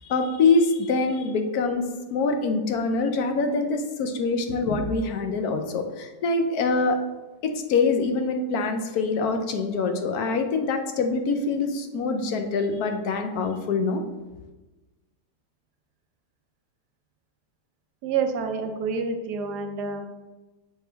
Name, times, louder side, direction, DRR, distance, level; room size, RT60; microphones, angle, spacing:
voice 1, 0.1-1.8 2.1-7.0 7.4-14.0, left 4 dB, 70° left, 6 dB, 1.1 m, -24 dB
voice 2, 18.0-20.0, right 5 dB, 80° right, 6 dB, 1.3 m, -28 dB
6.5 x 4.6 x 3.4 m, 1.1 s
omnidirectional pair, 1.8 m